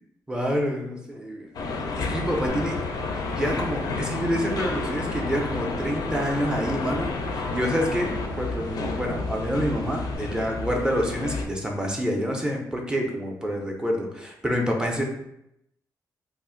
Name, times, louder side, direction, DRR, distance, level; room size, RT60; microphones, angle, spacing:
voice 1, 0.3-1.6 2.0-2.7 3.1-8.1 8.4-15.0, equal, 10° right, 0 dB, 0.4 m, -27 dB
sound 1, 1.5-11.4, left 3 dB, 65° left, 0.4 m, -30 dB
sound 2, 2.5-10.2, equal, 90° right, 0.8 m, -40 dB
2.4 x 2.4 x 3.7 m, 0.78 s
wide cardioid pair, 170°, 7 cm